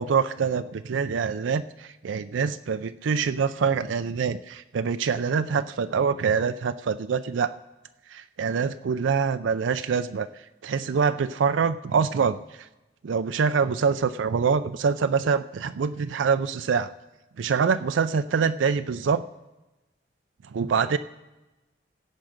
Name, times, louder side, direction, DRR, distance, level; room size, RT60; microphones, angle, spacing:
voice 1, 0.0-7.5 8.1-10.3 10.6-12.4 13.0-16.9 17.4-19.2 20.5-21.0, right 6 dB, 90° right, 10 dB, 0.4 m, -25 dB
16.5 x 7.5 x 5.1 m, 1.1 s
head